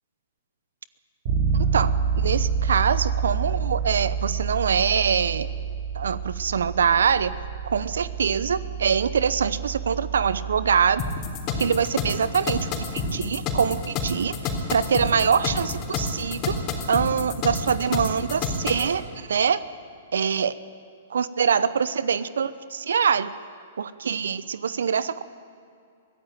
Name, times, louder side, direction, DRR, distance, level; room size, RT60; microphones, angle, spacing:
Bass guitar, 1.3-11.1, right 6 dB, 50° right, 5.1 m, -28 dB
voice 1, 1.5-5.5 5.9-7.3 7.6-11.0 11.6-12.9 13.1-14.3 14.7-16.6 16.9-19.6 20.1-20.5 21.1-23.3 23.8-25.2, right 6 dB, 75° right, 16 dB, 0.8 m, -24 dB
sound 1, 11.0-18.9, left 4 dB, 35° left, 3.8 m, -29 dB
23.5 x 15.5 x 9.2 m, 2.4 s
hypercardioid pair, 115°, 0 cm